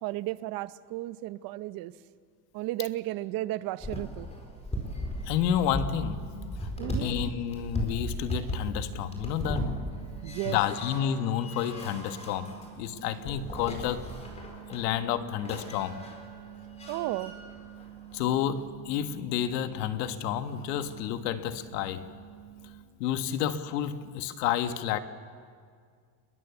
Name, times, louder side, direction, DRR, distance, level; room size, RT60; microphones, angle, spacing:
voice 1, 0.0-1.9 2.5-4.3 6.8-7.1 10.2-10.6 16.9-17.3, right 16 dB, 45° right, 0.8 m, -34 dB
sound 1, 3.8-7.2 7.5-18.3 19.4-19.7 20.1-21.1, equal, 15° left, 4.3 m, -37 dB
voice 2, 5.2-6.7 7.0-9.8 10.4-14.1 14.7-16.0 18.1-22.1 23.0-25.0, left 10 dB, 85° left, 1.6 m, -30 dB
sound 2, 8.7-22.8, right 12 dB, 80° right, 5.8 m, -48 dB
29.5 x 22.0 x 7.1 m
cardioid pair, 150°, 47 cm